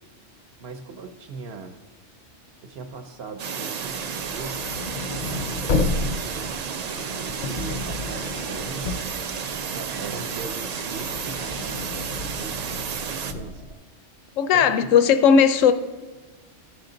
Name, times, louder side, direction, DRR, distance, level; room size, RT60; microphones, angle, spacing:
voice 1, 0.6-1.7 2.6-4.6 5.1-9.0 9.6-13.6 14.5-15.0, right 4 dB, 60° right, 6 dB, 0.9 m, -40 dB
sound 1, 3.4-13.3, right 6 dB, 80° right, 0.3 m, -32 dB
sound 2, 3.9-10.0 10.3-13.7, left 3 dB, 55° left, 0.5 m, -31 dB
sound 3, 5.1-13.7, right 1 dB, 30° right, 0.8 m, -49 dB
voice 2, 14.4-15.7, left 7 dB, 85° left, 10 dB, 1.0 m, -17 dB
13.0 x 6.4 x 3.8 m, 1.3 s
omnidirectional pair, 1.3 m